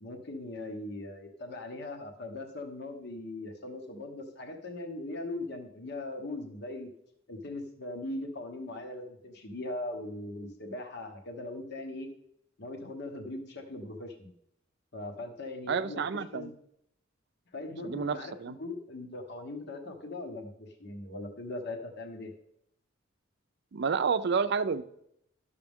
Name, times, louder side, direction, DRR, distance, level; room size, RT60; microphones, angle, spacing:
voice 1, 0.0-6.9 7.3-12.1 12.6-14.3 14.9-16.5 17.5-22.3, left 2 dB, 60° left, 4 dB, 1.1 m, -40 dB
voice 2, 15.7-16.5 17.8-18.6 23.7-24.8, right 5 dB, 60° right, 13 dB, 0.5 m, -30 dB
11.5 x 6.7 x 3.6 m, 0.75 s
head